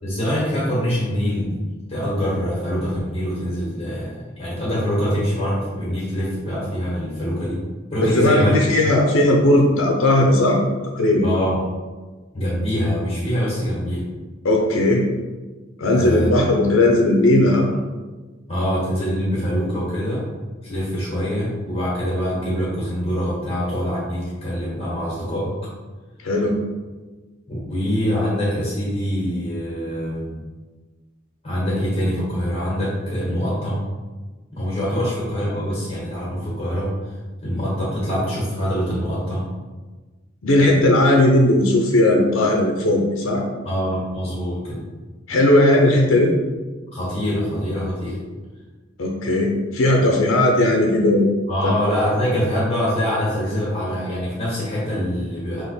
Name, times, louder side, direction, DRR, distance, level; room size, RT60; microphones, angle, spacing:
voice 1, 0.0-1.6 1.9-7.6 7.9-8.6 11.2-11.7 12.3-14.0 15.9-16.3 18.5-20.2 20.6-25.5 27.5-30.4 31.4-33.8 34.5-36.9 37.4-39.5 43.6-44.8 46.9-48.2 51.5-55.6, equal, 30° left, -7 dB, 1.4 m, -24 dB
voice 2, 8.0-10.6 11.0-11.2 14.4-15.0 15.8-17.7 26.2-26.6 40.4-43.4 45.3-46.3 49.0-51.3 51.6-51.7, left 1 dB, 90° left, 1 dB, 0.6 m, -17 dB
3.7 x 3.0 x 4.3 m, 1.3 s
head